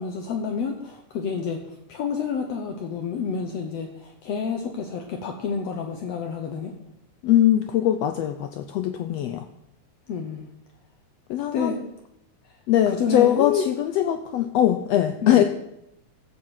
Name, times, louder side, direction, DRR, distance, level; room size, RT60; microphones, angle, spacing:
voice 1, 0.0-6.7 10.1-10.5 11.5-11.8 12.9-13.6 15.2-15.4, left 6 dB, 65° left, 3 dB, 1.9 m, -29 dB
voice 2, 7.2-9.5 11.3-11.8 12.7-15.4, left 11 dB, 85° left, 8 dB, 1.5 m, -21 dB
14.5 x 6.7 x 5.7 m, 0.81 s
omnidirectional pair, 3.6 m